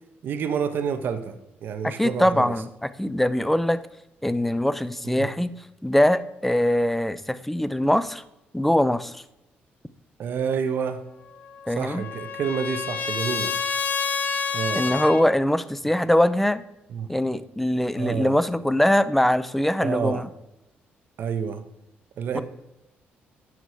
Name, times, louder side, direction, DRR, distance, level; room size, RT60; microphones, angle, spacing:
voice 1, 0.2-2.5 5.0-5.2 10.2-11.0 11.7-13.5 14.5-14.9 16.9-17.1 18.0-18.4 19.8-20.2 21.2-21.6 22.2-22.4, right 7 dB, 60° right, 9 dB, 1.0 m, -28 dB
voice 2, 1.8-3.8 4.2-5.5 5.8-8.2 8.5-9.2 11.7-12.0 14.8-16.6 17.1-20.3 22.3-22.4, left 1 dB, 5° left, 14 dB, 0.5 m, -22 dB
Trumpet, 11.4-15.2, left 5 dB, 50° left, 0.9 m, -28 dB
9.7 x 6.2 x 4.7 m, 0.89 s
cardioid pair, 120°, 4 cm